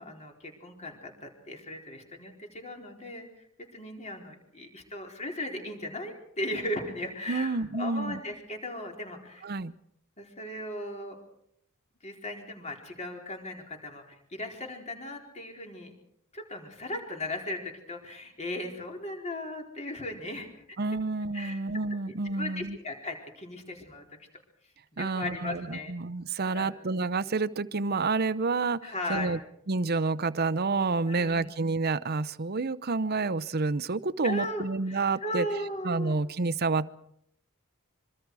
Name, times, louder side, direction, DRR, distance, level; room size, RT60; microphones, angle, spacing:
voice 1, 0.0-9.5 10.2-11.2 12.0-15.9 16.3-20.5 21.3-21.6 22.2-24.0 25.0-25.9 26.5-26.7 28.8-29.4 31.1-31.5 34.2-36.2, left 1 dB, 30° left, 2 dB, 4.4 m, -37 dB
voice 2, 7.3-8.2 9.4-9.7 20.8-22.8 25.0-29.4 29.7-35.5 35.8-37.0, right 3 dB, 50° right, 16 dB, 0.8 m, -29 dB
25.5 x 24.5 x 4.9 m, 0.74 s
head